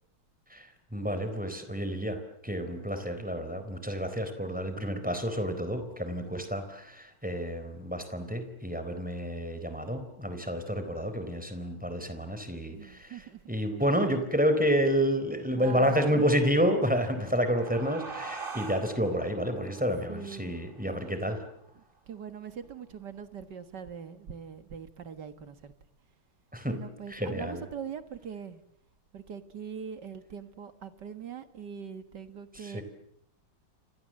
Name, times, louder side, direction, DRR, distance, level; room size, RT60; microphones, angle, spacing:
voice 1, 0.9-13.2 13.5-21.4 26.5-26.8 27.1-27.6 32.5-32.8, equal, 5° right, 8 dB, 3.7 m, -29 dB
voice 2, 12.7-13.4 14.6-14.7 15.5-16.3 20.1-20.6 21.0-21.3 22.1-25.7 26.7-28.6 29.1-32.8, right 7 dB, 55° right, 10 dB, 2.1 m, -42 dB
sound 1, 16.9-22.0, right 4 dB, 25° right, 2.2 m, -44 dB
29.5 x 25.5 x 7.6 m, 0.75 s
omnidirectional pair, 2.3 m